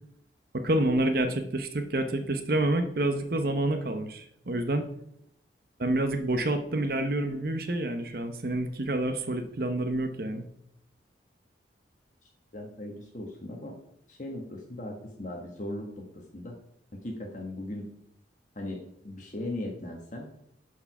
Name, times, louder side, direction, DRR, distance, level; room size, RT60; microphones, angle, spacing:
voice 1, 0.5-4.9 5.8-10.5, right 1 dB, 50° right, 7 dB, 0.8 m, -28 dB
voice 2, 12.5-13.8 14.1-16.1 16.3-16.6 16.9-17.9 18.5-20.3, left 1 dB, 40° left, 0 dB, 1.2 m, -38 dB
9.8 x 4.7 x 5.9 m, 0.75 s
head